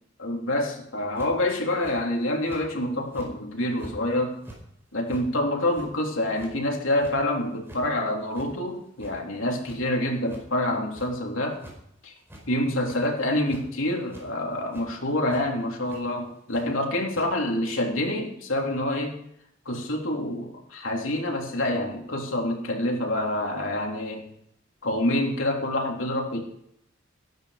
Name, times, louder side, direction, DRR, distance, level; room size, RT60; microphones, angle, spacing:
voice 1, 0.2-4.4 4.9-11.6 12.0-12.1 12.5-19.2 19.6-24.3 24.8-26.4, left 1 dB, 90° left, 0 dB, 3.4 m, -27 dB
sound 1, 1.2-1.4 1.8-2.0 2.5-2.6 3.1-3.3 3.8-3.9 4.3-4.6 5.1-5.2 5.7-5.9 6.3-6.5 7.0-7.2 7.5-7.8 8.3-8.5 8.8-9.4 9.6-9.8 10.3-10.4 10.9-11.1 11.5-11.8 12.2-12.4 12.7-13.0 13.5-13.6 14.1-14.2 14.7-14.9 15.3-15.4 15.9-16.0 16.5-16.6 17.1-17.3, right 1 dB, 10° right, 4.9 m, -45 dB
13.5 x 12.0 x 5.0 m, 0.73 s
head